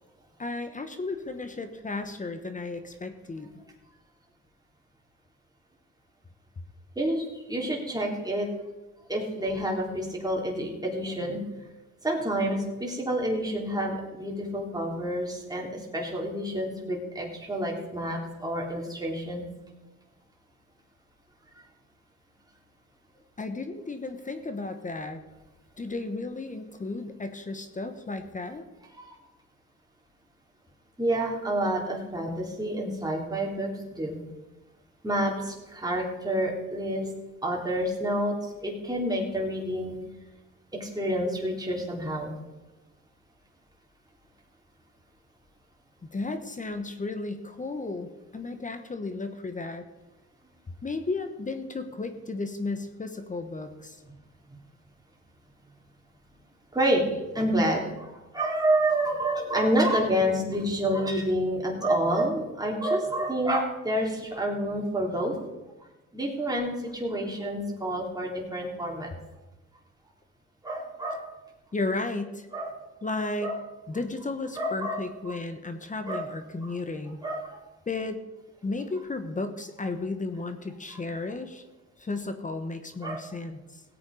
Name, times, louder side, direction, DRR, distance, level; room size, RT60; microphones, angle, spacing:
voice 1, 0.4-3.5 23.4-25.2 25.8-28.6 46.0-49.8 50.8-54.0 71.7-72.5 73.0-73.6 73.9-77.2 77.9-78.2 78.6-81.6 82.0-83.8, left 3 dB, 25° left, 8 dB, 1.2 m, -34 dB
voice 2, 6.9-8.5 9.1-11.4 12.0-19.4 29.0-29.2 31.0-34.2 35.0-37.1 37.4-40.0 40.7-42.3 56.7-57.0 57.3-65.4 66.1-69.1 70.6-71.3 72.5-72.7 73.4-73.6 74.6-75.0 75.3-75.4 76.0-76.3 76.6-76.7 77.2-77.6 83.0-83.2, right 1 dB, 15° right, -1 dB, 3.5 m, -28 dB
17.0 x 8.5 x 4.9 m, 1.1 s
cardioid pair, 90°, 30 cm